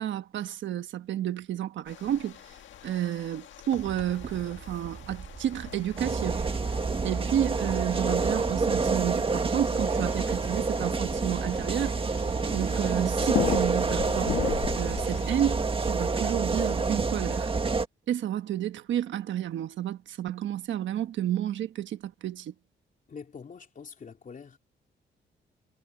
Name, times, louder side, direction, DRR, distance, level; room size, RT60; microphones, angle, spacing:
voice 1, 0.0-2.4 2.8-6.5 7.0-12.0 12.5-14.4 14.8-17.5 18.1-22.5, right 11 dB, 85° right, 1.3 m, -31 dB
sound 1, 1.9-15.5, left 11 dB, 90° left, 1.7 m, -39 dB
Walk footsteps / Chatter / Hiss, 3.7-15.3, right 6 dB, 50° right, 2.8 m, -44 dB
sound 2, 6.0-17.8, right 4 dB, 30° right, 1.8 m, -28 dB
voice 2, 23.1-24.6, left 5 dB, 45° left, 3.2 m, -44 dB
cardioid pair, 100°, 19 cm